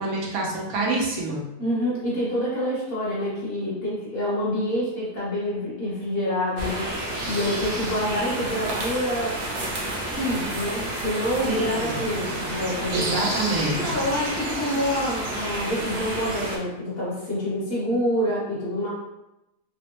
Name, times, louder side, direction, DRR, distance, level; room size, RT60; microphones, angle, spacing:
voice 1, 0.0-1.4 11.4-12.0 12.9-13.9, right 2 dB, 90° right, -2 dB, 1.2 m, -26 dB
voice 2, 1.6-6.9 7.3-9.4 10.1-13.3 13.8-18.9, equal, 45° left, -7 dB, 1.1 m, -27 dB
sound 1, 6.6-16.6, right 1 dB, 55° right, 0.9 m, -30 dB
3.4 x 2.1 x 2.8 m, 0.93 s
omnidirectional pair, 1.5 m